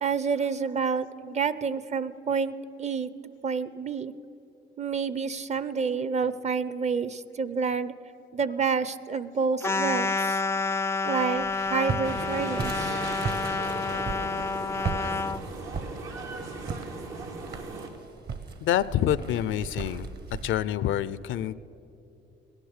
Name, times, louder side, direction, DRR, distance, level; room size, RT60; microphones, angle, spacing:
voice 1, 0.0-3.1 3.4-4.1 4.8-7.9 8.3-10.4 11.0-12.9, right 5 dB, 35° right, 15 dB, 0.6 m, -29 dB
sound 1, 9.6-15.4, left 4 dB, 15° left, 0.3 m, -29 dB
Walk footsteps, 11.3-20.5, right 5 dB, 55° right, 1.3 m, -37 dB
sound 2, 12.0-17.9, right 3 dB, 85° right, 1.9 m, -38 dB
voice 2, 18.6-20.1 20.4-21.5, left 11 dB, 80° left, 17 dB, 0.5 m, -27 dB
17.5 x 10.5 x 6.6 m, 2.9 s
cardioid pair, 90°, 20 cm